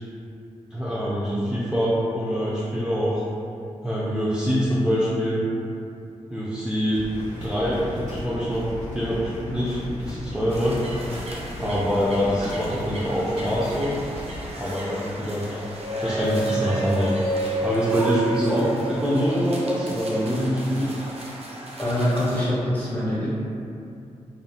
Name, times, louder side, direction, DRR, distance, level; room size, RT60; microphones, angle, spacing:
voice 1, 0.7-3.3 3.8-5.4 6.3-7.0 7.4-8.6 8.9-10.8 11.6-13.9 14.6-15.4 16.0-20.9, equal, 5° right, -8 dB, 0.5 m, -24 dB
sound 1, 6.9-14.5, left 1 dB, 70° right, 1.2 m, -36 dB
sound 2, 10.5-22.4, right 1 dB, 50° right, 0.6 m, -37 dB
sound 3, 15.5-19.6, right 3 dB, 65° left, 0.5 m, -29 dB
voice 2, 21.8-23.3, left 1 dB, 15° left, -10 dB, 1.4 m, -24 dB
2.6 x 2.4 x 2.3 m, 2.6 s
supercardioid pair, 45°, 13 cm